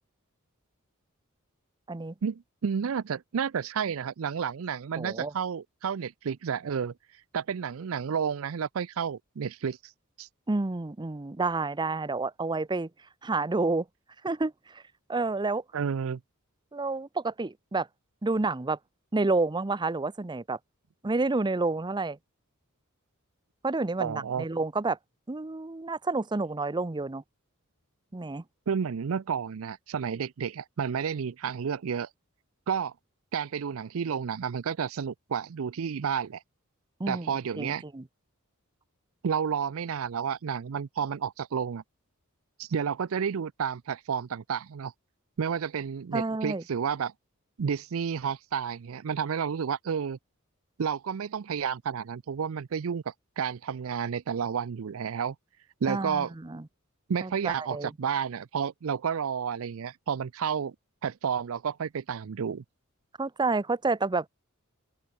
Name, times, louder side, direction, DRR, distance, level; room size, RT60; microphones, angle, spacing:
voice 1, 2.2-6.9 7.3-9.8 10.2-10.3 15.7-16.2 24.0-24.5 28.7-32.1 32.7-32.9 33.3-36.4 37.1-37.8 39.2-41.8 42.6-44.9 45.4-47.1 47.6-50.2 50.8-55.4 55.8-56.3 57.1-60.7 61.0-62.6, right 7 dB, 70° right, 0.5 m, -31 dB
voice 2, 5.0-5.3 10.5-12.9 13.2-13.9 14.2-14.8 15.1-15.6 16.7-17.9 18.2-18.8 19.1-20.6 21.0-22.2 23.6-25.0 25.3-27.2 28.1-28.4 37.0-37.3 37.6-38.0 46.1-46.6 55.9-56.6 57.2-57.9 63.2-64.3, right 3 dB, 20° right, 0.6 m, -29 dB
open air
head